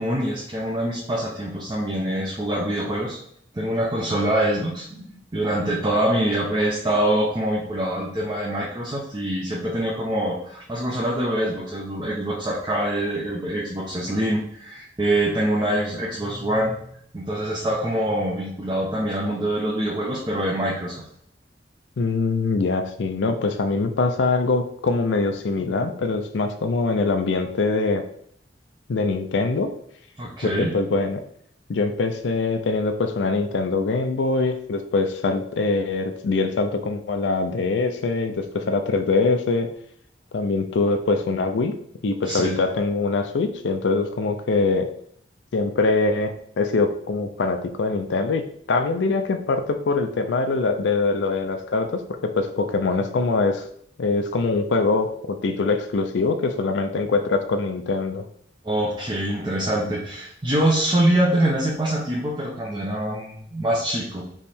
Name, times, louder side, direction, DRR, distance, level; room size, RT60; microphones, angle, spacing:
voice 1, 0.0-3.2 3.5-21.0 25.6-25.8 30.2-30.7 42.2-42.6 58.6-64.2, right 1 dB, 25° right, -5 dB, 0.8 m, -24 dB
voice 2, 22.0-28.0 28.9-29.7 30.4-31.2 31.7-39.7 40.3-41.7 42.0-44.9 45.5-53.7 54.0-58.2, left 3 dB, 75° left, 7 dB, 0.4 m, -23 dB
3.5 x 3.1 x 4.2 m, 0.65 s
head